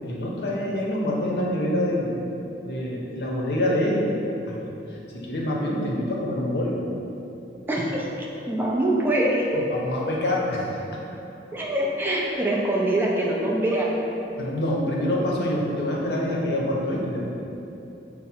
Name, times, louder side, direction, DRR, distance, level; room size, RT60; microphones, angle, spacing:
voice 1, 0.0-2.1 2.6-4.1 4.4-4.8 5.1-6.8 9.5-11.0 14.4-17.2, left 1 dB, 65° left, -3 dB, 0.7 m, -26 dB
voice 2, 7.7-8.1 8.5-9.6 11.5-14.0, right 1 dB, 10° right, -4 dB, 0.4 m, -24 dB
4.7 x 2.0 x 4.3 m, 2.9 s
head